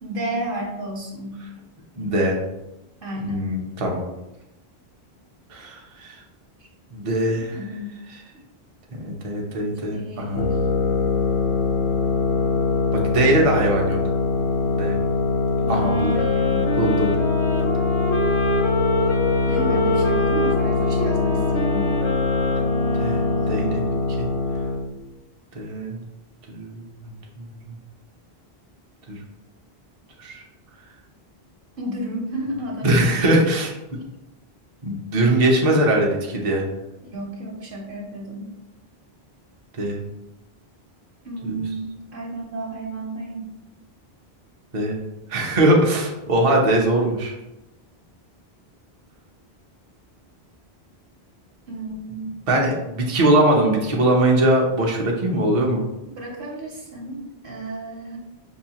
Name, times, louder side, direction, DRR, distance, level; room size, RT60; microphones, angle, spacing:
voice 1, 0.0-1.4 3.0-3.6 7.5-7.9 9.9-10.6 15.7-16.7 19.5-21.9 31.8-33.2 35.4-35.9 37.0-38.5 41.2-43.5 51.7-52.3 56.0-58.2, right 1 dB, 60° right, -1 dB, 1.0 m, -32 dB
voice 2, 2.0-2.4 3.2-4.0 5.5-6.2 6.9-7.5 8.9-10.4 13.0-14.0 14.8-15.0 15.7-16.1 16.8-17.1 23.0-23.8 24.2-24.3 25.5-26.0 26.5-26.8 27.4-27.5 29.1-29.2 30.2-30.4 32.8-33.7 34.8-36.6 39.8-40.0 41.4-41.5 44.7-45.0 45.3-47.3 52.5-55.8, right 1 dB, 40° right, -1 dB, 0.6 m, -21 dB
sound 1, 10.3-24.9, left 3 dB, 85° left, 0.9 m, -22 dB
Wind instrument woodwind instrument, 15.6-24.0, equal, 45° left, 0.4 m, -27 dB
5.4 x 2.3 x 2.8 m, 0.94 s
omnidirectional pair, 1.1 m